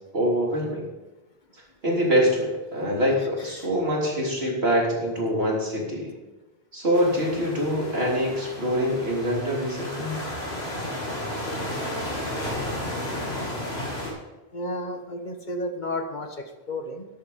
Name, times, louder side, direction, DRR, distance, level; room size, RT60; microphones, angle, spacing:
voice 1, 0.1-0.8 1.8-6.1 6.7-10.2, equal, 75° right, -2 dB, 3.7 m, -24 dB
sound 1, 6.9-14.1, left 1 dB, 85° left, 3.7 m, -33 dB
voice 2, 14.5-17.1, left 1 dB, 50° left, 5 dB, 1.4 m, -32 dB
13.5 x 11.0 x 4.2 m, 1.1 s
omnidirectional pair, 1.0 m